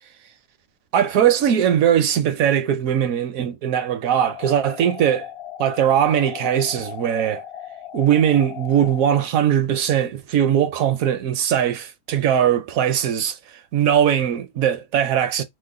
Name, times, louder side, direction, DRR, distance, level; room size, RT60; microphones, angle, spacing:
voice 1, 0.9-5.3 5.6-7.4 7.9-13.4 13.7-15.4, right 9 dB, 70° right, 0.9 m, -20 dB
sound 1, 4.0-9.1, left 10 dB, 60° left, 0.7 m, -37 dB
3.1 x 2.0 x 3.7 m
omnidirectional pair, 1.5 m